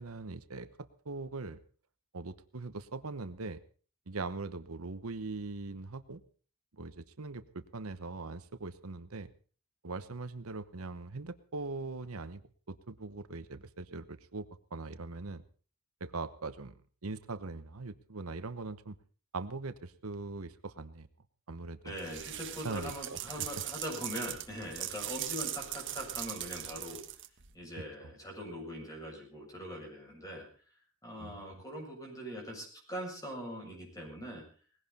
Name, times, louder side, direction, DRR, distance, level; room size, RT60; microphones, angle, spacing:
voice 1, 0.0-1.6 2.1-3.6 4.1-6.2 6.8-9.3 9.8-12.4 12.7-14.5 14.7-15.4 16.0-16.8 17.0-19.0 19.3-21.1 21.5-21.9 22.6-23.5 31.2-31.6, right 3 dB, 85° right, 11 dB, 1.0 m, -41 dB
voice 2, 21.8-27.0 27.5-30.5 31.0-34.4, equal, 15° left, 0 dB, 7.6 m, -42 dB
sound 1, 22.0-27.5, right 13 dB, 60° right, 1.5 m, -40 dB
20.0 x 16.0 x 4.2 m, 0.41 s
head